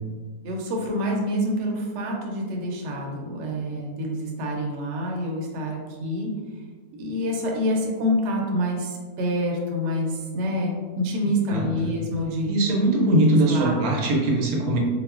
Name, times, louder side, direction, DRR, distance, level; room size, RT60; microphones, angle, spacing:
voice 1, 0.4-6.3 7.0-12.6 13.5-13.8, equal, 65° right, -1 dB, 0.8 m, -27 dB
voice 2, 12.5-14.8, right 1 dB, 85° right, 0 dB, 1.1 m, -21 dB
4.1 x 2.1 x 2.3 m, 1.5 s
omnidirectional pair, 1.5 m